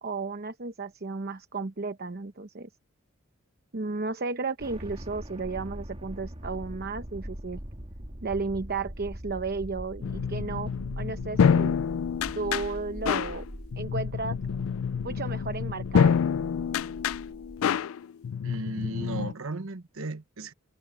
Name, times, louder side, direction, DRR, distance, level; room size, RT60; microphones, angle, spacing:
voice 1, 0.0-2.7 3.7-7.6 8.2-11.8 12.3-13.5 13.8-14.4 15.0-16.2, right 3 dB, 50° right, 0.9 m, -33 dB
sound 1, 4.6-17.6, equal, 30° right, 1.8 m, -41 dB
sound 2, 10.0-19.3, left 7 dB, 80° left, 0.3 m, -27 dB
voice 2, 18.4-20.5, right 3 dB, 75° right, 1.1 m, -36 dB
head